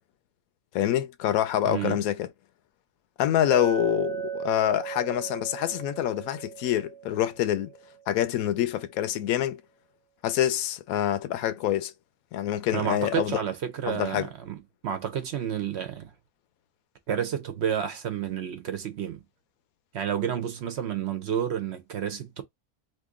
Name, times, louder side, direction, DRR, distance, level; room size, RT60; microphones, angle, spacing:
voice 1, 0.7-2.3 3.2-7.7 8.1-9.6 10.2-11.9 12.3-13.4 13.9-14.3, left 12 dB, 80° left, 1.0 m, -26 dB
voice 2, 1.7-2.0 12.7-16.1 17.1-19.2 19.9-22.4, right 9 dB, 60° right, 0.7 m, -30 dB
Chink clink, 3.5-7.9, right 9 dB, 15° left, 0.8 m, -36 dB
2.9 x 2.5 x 3.6 m
omnidirectional pair, 1.5 m